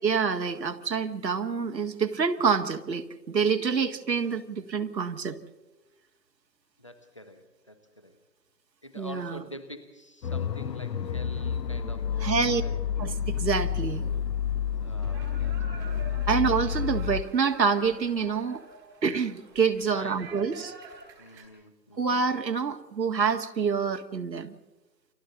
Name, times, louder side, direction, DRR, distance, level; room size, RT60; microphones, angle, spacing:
voice 1, 0.0-5.4 9.0-9.4 12.2-12.6 13.0-14.0 16.3-18.6 19.0-20.7 22.0-24.5, right 5 dB, 80° right, 7 dB, 1.8 m, -27 dB
voice 2, 6.8-8.2 8.8-12.8 14.8-16.3 19.9-20.7 21.2-22.2, equal, 20° left, 9 dB, 0.7 m, -46 dB
sound 1, 10.2-17.2, left 8 dB, 75° left, 0.9 m, -30 dB
sound 2, 15.0-21.5, right 3 dB, 5° right, 1.3 m, -47 dB
29.5 x 23.5 x 3.8 m, 1.1 s
hypercardioid pair, 165°, 50 cm